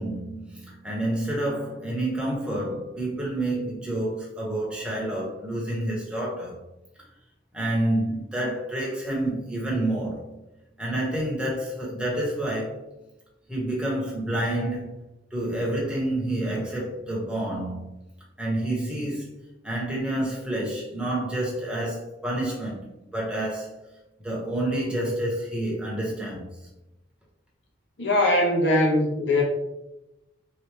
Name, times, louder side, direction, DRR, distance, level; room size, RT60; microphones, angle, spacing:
voice 1, 0.0-6.6 7.5-10.4 10.8-12.8 13.5-15.0 15.3-17.9 18.4-19.4 19.6-23.7 24.2-26.5, right 1 dB, 5° right, 1.2 m, -28 dB
voice 2, 28.0-29.4, left 1 dB, 75° left, 1.2 m, -21 dB
4.1 x 3.2 x 3.4 m
head